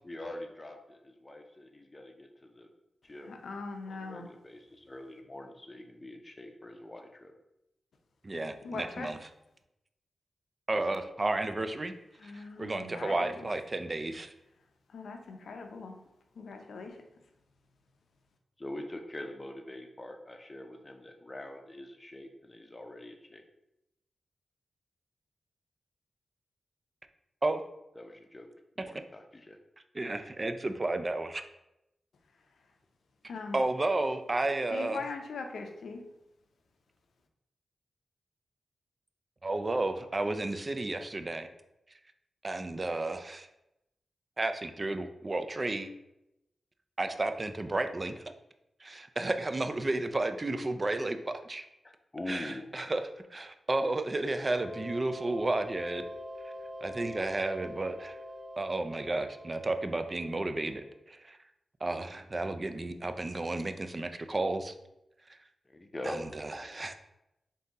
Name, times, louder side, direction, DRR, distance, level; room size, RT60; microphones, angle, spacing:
voice 1, 0.0-2.7 3.0-3.4 3.9-7.3 18.6-23.4 28.0-28.5 28.8-29.6 51.8-52.6 65.7-66.2, left 1 dB, 25° left, 4 dB, 0.6 m, -44 dB
voice 2, 3.2-4.3 8.6-9.1 12.2-13.5 14.9-16.0 16.3-17.0 33.3-33.6 34.7-36.0, left 4 dB, 85° left, 4 dB, 0.5 m, -41 dB
voice 3, 8.2-9.2 10.7-11.9 12.2-14.3 27.4-27.6 29.9-31.4 33.5-35.0 39.4-41.5 42.4-43.5 44.4-45.9 47.0-48.2 48.8-51.7 52.3-53.0 53.3-56.0 56.8-58.2 58.6-61.4 61.8-64.7 66.0-66.9, right 2 dB, 35° right, 8 dB, 0.3 m, -32 dB
sound 1, 54.2-60.8, left 1 dB, 5° left, 1.2 m, -45 dB
3.6 x 2.7 x 3.9 m, 0.88 s
cardioid pair, 70°, 0 cm